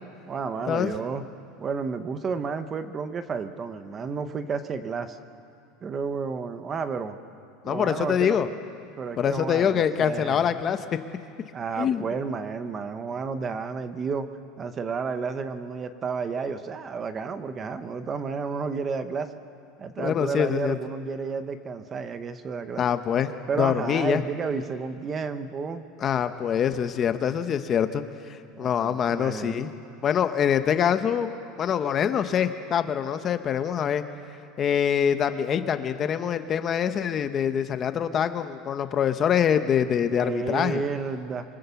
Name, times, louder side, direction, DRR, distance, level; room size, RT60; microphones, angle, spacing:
voice 1, 0.3-1.2 1.6-5.2 5.8-7.2 7.7-8.4 9.0-10.8 11.5-14.3 14.6-19.3 19.8-22.9 23.5-25.9 28.5-29.6 40.1-41.4, right 5 dB, 20° right, 10 dB, 0.9 m, -31 dB
voice 2, 7.6-8.5 9.2-10.8 11.8-12.1 20.0-20.8 22.8-23.3 23.6-24.2 26.0-28.0 28.3-29.7 30.0-31.3 31.6-34.0 34.6-40.8, left 8 dB, 25° left, 9 dB, 0.8 m, -24 dB
25.0 x 24.5 x 7.0 m, 2.4 s
supercardioid pair, 175°, 0 cm